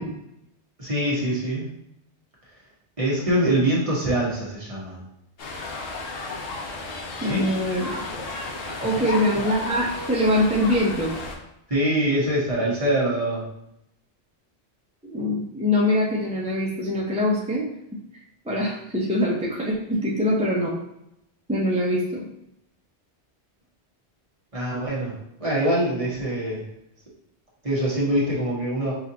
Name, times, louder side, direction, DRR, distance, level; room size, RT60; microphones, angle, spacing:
voice 1, 0.8-1.7 3.0-5.0 7.3-7.5 8.8-9.1 11.7-13.4 24.5-26.6 27.6-28.9, right 1 dB, 30° right, -6 dB, 1.3 m, -24 dB
sound 1, 5.4-11.4, left 3 dB, 60° left, 0.9 m, -33 dB
voice 2, 7.2-8.3 8.6-11.1 15.1-17.7 18.1-20.7 21.5-22.2, left 1 dB, 10° right, -5 dB, 0.5 m, -24 dB
5.6 x 2.6 x 2.8 m, 0.81 s
omnidirectional pair, 1.2 m